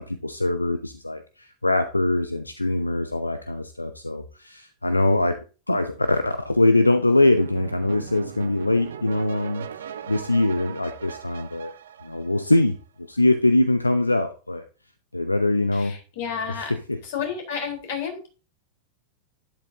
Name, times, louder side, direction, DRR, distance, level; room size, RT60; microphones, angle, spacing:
voice 1, 0.0-5.4 5.7-9.7 10.1-11.7 12.0-14.6 15.1-16.0 16.5-17.0, left 2 dB, 85° left, 10 dB, 0.7 m, -23 dB
sound 1, 7.4-12.8, right 8 dB, 65° right, 0.9 m, -39 dB
voice 2, 15.7-16.7 17.0-18.3, left 7 dB, 55° left, 3 dB, 4.1 m, -31 dB
11.5 x 10.5 x 2.8 m, 0.35 s
figure-of-eight pair, 90°, 0 cm